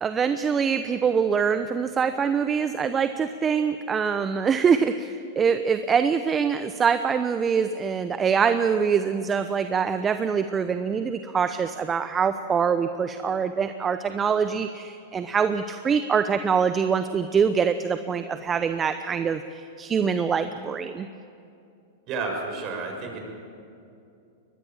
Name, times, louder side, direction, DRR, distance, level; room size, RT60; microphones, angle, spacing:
voice 1, 0.0-21.1, right 6 dB, 25° right, 10 dB, 0.8 m, -24 dB
voice 2, 22.1-23.2, right 4 dB, 40° right, 2 dB, 6.5 m, -31 dB
23.5 x 20.5 x 7.5 m, 2.5 s
hypercardioid pair, 110°, 0 cm